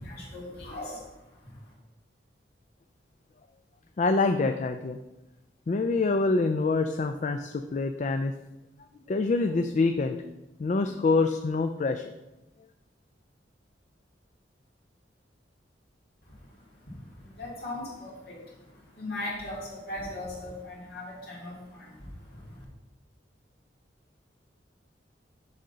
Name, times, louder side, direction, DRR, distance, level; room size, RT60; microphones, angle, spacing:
voice 1, 0.0-1.7 16.2-22.6, left 1 dB, 55° left, -4 dB, 2.5 m, -40 dB
voice 2, 4.0-5.0 5.7-8.3 9.1-10.3 10.6-12.0, left 3 dB, 40° left, 7 dB, 0.3 m, -26 dB
6.4 x 5.0 x 5.6 m, 1.0 s
head